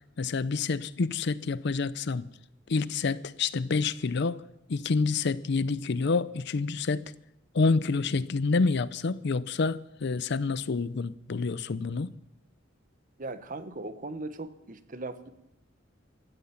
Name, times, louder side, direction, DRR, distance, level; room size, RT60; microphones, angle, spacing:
voice 1, 0.2-2.3 2.7-4.4 4.7-7.0 7.5-12.1, left 4 dB, 60° left, 0.5 m, -28 dB
voice 2, 13.2-15.3, right 2 dB, 45° right, 1.0 m, -38 dB
16.0 x 13.0 x 5.8 m
head